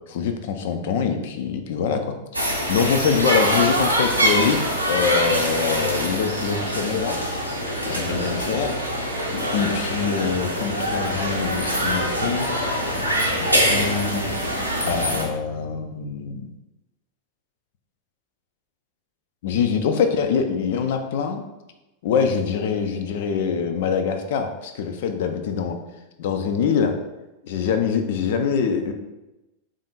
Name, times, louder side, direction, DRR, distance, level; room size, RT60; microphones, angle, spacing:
voice 1, 0.1-4.6 4.9-7.2 7.9-8.8 9.3-12.7 13.2-14.3 14.9-16.5 19.4-21.4 22.0-25.8 26.2-27.0 27.4-28.9, left 6 dB, 55° left, 6 dB, 0.4 m, -24 dB
sound 1, 2.3-15.2, equal, 90° right, 0.6 m, -24 dB
3.5 x 2.5 x 4.0 m, 1.0 s
figure-of-eight pair, 90°, 0 cm